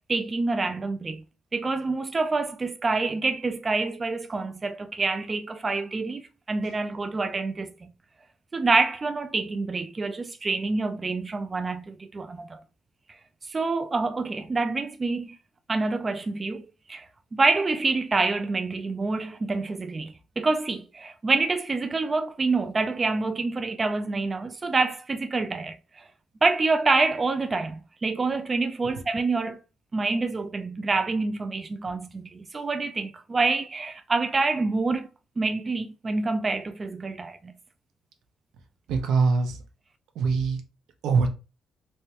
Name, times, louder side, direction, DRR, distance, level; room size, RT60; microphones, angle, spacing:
voice 1, 0.1-1.2 1.5-6.2 6.5-7.9 8.5-12.6 13.5-15.4 15.7-17.0 17.3-26.0 26.4-29.6 29.9-35.1 35.4-37.5, right 3 dB, 30° right, 0.4 m, -27 dB
voice 2, 38.9-39.6 40.1-40.6 41.0-41.3, right 4 dB, 85° right, 0.8 m, -23 dB
3.2 x 3.2 x 2.9 m
cardioid pair, 90°, 0 cm